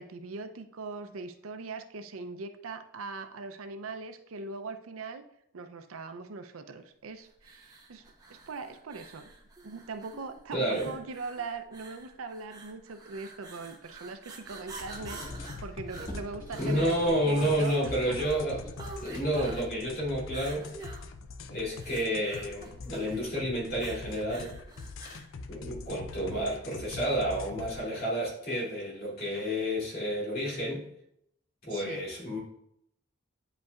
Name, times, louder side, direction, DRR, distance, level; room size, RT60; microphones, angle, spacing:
voice 1, 0.0-5.2 5.5-8.0 8.3-9.3 9.6-17.8 18.1-18.2 31.7-32.0, right 4 dB, 90° right, 8 dB, 0.6 m, -41 dB
sound 1, 7.4-25.3, right 3 dB, 20° right, 0.8 m, -48 dB
voice 2, 10.5-10.9 16.6-18.6 19.0-20.7 21.5-24.6 25.5-30.9 31.6-32.4, equal, 45° left, -6 dB, 2.7 m, -30 dB
Squeak, 14.4-19.7, equal, 15° left, 1.4 m, -48 dB
sound 2, 14.8-27.8, left 3 dB, 70° left, 0.4 m, -43 dB
9.3 x 5.3 x 2.4 m, 0.77 s
head